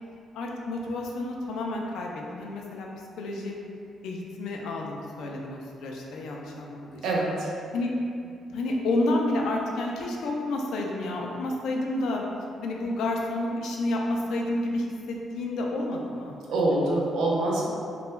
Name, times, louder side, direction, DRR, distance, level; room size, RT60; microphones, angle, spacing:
voice 1, 0.3-2.9 3.2-3.5 4.0-7.3 7.7-7.9 8.2-12.2 12.6-16.3, left 2 dB, 80° left, 0 dB, 0.3 m, -30 dB
voice 2, 7.0-7.5 16.5-17.7, right 2 dB, 80° right, -4 dB, 0.5 m, -25 dB
2.2 x 2.1 x 3.0 m, 2.5 s
cardioid pair, 130°, 0 cm